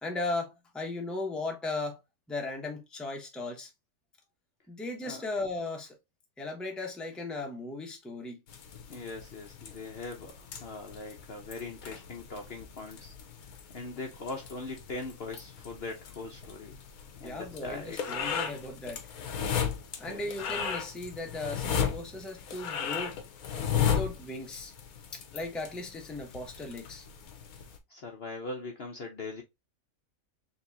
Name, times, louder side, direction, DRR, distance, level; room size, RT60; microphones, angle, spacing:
voice 1, 0.0-2.0 2.3-3.7 4.7-6.0 6.4-8.4 17.2-19.0 20.0-23.2 23.7-24.7 25.1-27.1, left 2 dB, ahead, 0.8 m, -37 dB
sound 1, 8.5-27.8, left 8 dB, 80° left, 1.3 m, -36 dB
voice 2, 8.9-13.1 13.7-16.8 17.2-18.2 20.1-20.3 27.9-29.4, left 3 dB, 50° left, 0.9 m, -41 dB
4.4 x 3.4 x 2.7 m
omnidirectional pair, 1.6 m